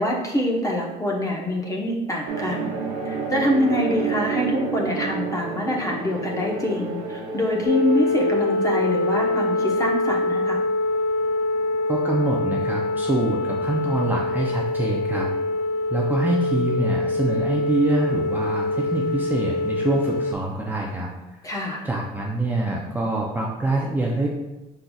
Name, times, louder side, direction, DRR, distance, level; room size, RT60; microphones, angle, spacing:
voice 1, 0.0-2.8 3.0-10.6 21.4-21.8, left 1 dB, 20° left, -1 dB, 0.9 m, -25 dB
sound 1, 2.3-9.9, right 4 dB, 85° right, 0.8 m, -30 dB
sound 2, 7.6-20.3, left 2 dB, 75° left, 0.4 m, -24 dB
voice 2, 11.9-15.3 15.9-21.1 21.4-21.5 21.8-24.3, right 2 dB, 10° right, -3 dB, 0.5 m, -25 dB
5.4 x 3.8 x 2.3 m, 1.0 s
cardioid pair, 110°, 17 cm